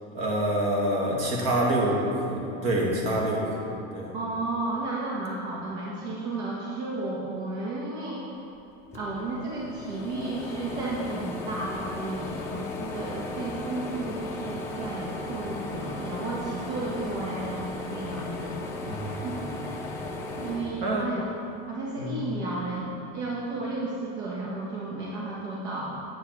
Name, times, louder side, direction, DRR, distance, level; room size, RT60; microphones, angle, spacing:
voice 1, 0.1-4.1 18.8-19.3 20.8-21.1 22.0-22.4, right 1 dB, 60° right, -2 dB, 2.0 m, -27 dB
voice 2, 4.1-8.2 8.9-18.7 19.0-19.7 20.4-21.3 21.6-26.0, right 2 dB, 75° right, -4 dB, 1.4 m, -33 dB
sound 1, 8.6-8.7 8.9-21.5 22.0-23.1, left 2 dB, 10° left, 0.4 m, -36 dB
8.7 x 7.1 x 4.7 m, 2.9 s
supercardioid pair, 180°, 33 cm